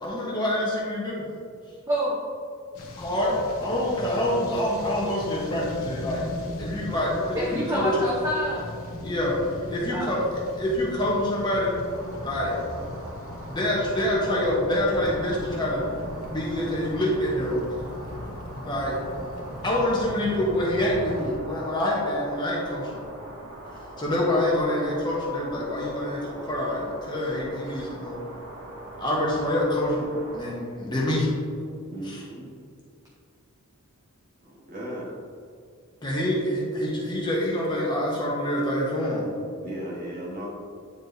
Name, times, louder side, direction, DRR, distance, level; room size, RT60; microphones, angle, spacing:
voice 1, 0.0-1.2 3.0-6.2 6.6-8.0 9.0-10.2 10.6-11.8 12.2-12.6 13.5-15.9 16.2-17.6 18.6-19.0 19.6-23.0 24.0-28.2 29.0-31.3 32.0-32.2 36.0-39.3, left 1 dB, 20° left, -5 dB, 1.1 m, -26 dB
voice 2, 1.9-2.2 7.4-8.7 9.9-10.2 27.7-27.8, equal, 15° right, -5 dB, 0.8 m, -28 dB
sound 1, 2.7-21.4, left 1 dB, 75° left, 1.0 m, -38 dB
sound 2, 11.8-30.5, right 1 dB, 65° right, 1.4 m, -42 dB
voice 3, 31.9-32.5 34.7-35.1 39.6-40.5, right 1 dB, 40° right, -4 dB, 1.4 m, -36 dB
9.5 x 4.6 x 2.7 m, 2.3 s
head